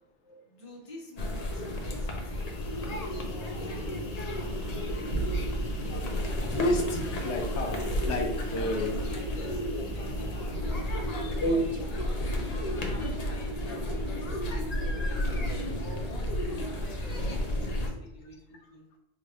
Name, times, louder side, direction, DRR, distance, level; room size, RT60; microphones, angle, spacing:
voice 1, 0.4-2.8 3.3-3.9 4.2-5.5 8.6-10.5 10.9-15.4 15.7-18.8, left 1 dB, 30° left, -3 dB, 0.9 m, -49 dB
sound 1, 1.2-17.9, left 1 dB, 45° left, 0.5 m, -32 dB
sound 2, 2.1-11.5, left 1 dB, 60° left, 1.1 m, -49 dB
sound 3, 4.4-10.9, right 2 dB, 60° right, 1.3 m, -43 dB
voice 2, 5.8-7.8 8.1-9.1 11.4-11.6, equal, 80° left, 3 dB, 0.9 m, -31 dB
4.4 x 3.3 x 2.5 m, 0.86 s
omnidirectional pair, 1.2 m